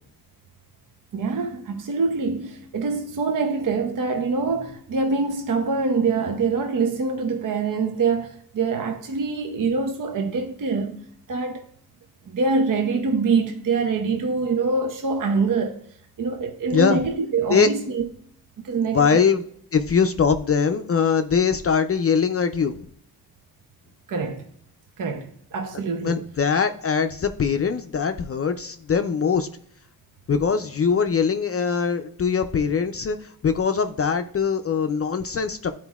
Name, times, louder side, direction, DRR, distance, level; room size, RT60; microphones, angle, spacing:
voice 1, 1.1-11.0 11.3-11.6 12.3-15.8 16.2-18.1 18.6-19.2 24.1-24.4 25.0-26.2, right 4 dB, 60° right, 0.7 m, -24 dB
voice 2, 18.9-19.4 19.7-22.9 26.0-29.5 30.3-35.7, left 6 dB, 40° left, 0.4 m, -22 dB
11.0 x 4.4 x 2.3 m
wide cardioid pair, 95°, 37 cm